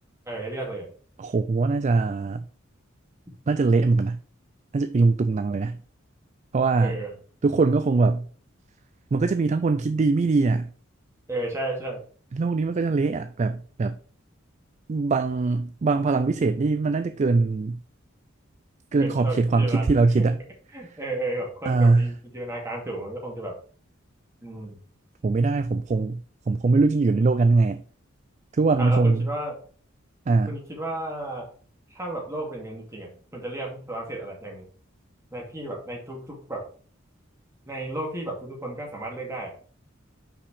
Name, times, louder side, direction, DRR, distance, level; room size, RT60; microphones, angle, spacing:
voice 1, 0.3-0.9 6.8-7.1 11.3-12.0 19.0-20.4 20.7-23.6 24.4-24.8 28.8-29.6 30.5-31.5 31.9-34.7 35.3-36.6 37.7-39.5, right 1 dB, 15° right, 2.3 m, -33 dB
voice 2, 1.2-2.4 3.5-4.2 4.7-5.8 6.5-7.0 7.4-8.3 9.1-10.7 12.3-14.0 14.9-17.8 18.9-20.4 21.7-22.1 25.2-26.2 26.5-27.8 28.5-29.2 30.3-30.5, right 3 dB, 35° right, 0.3 m, -22 dB
5.9 x 5.0 x 4.9 m
head